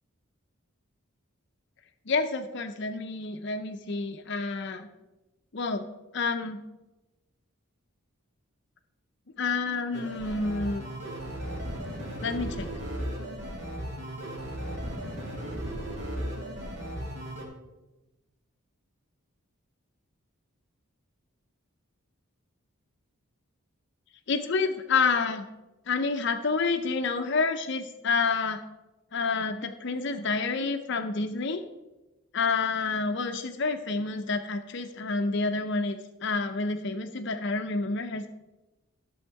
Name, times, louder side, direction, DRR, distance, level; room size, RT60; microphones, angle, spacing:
voice 1, 2.1-4.9 5.5-5.9 6.1-6.6 9.4-10.8 12.2-12.7 24.3-25.5 25.9-28.6 29.1-31.6 32.3-38.3, left 4 dB, 55° left, 7 dB, 0.6 m, -29 dB
sound 1, 9.9-17.4, equal, 50° right, 2.2 m, -36 dB
11.5 x 7.1 x 4.6 m, 1.0 s
head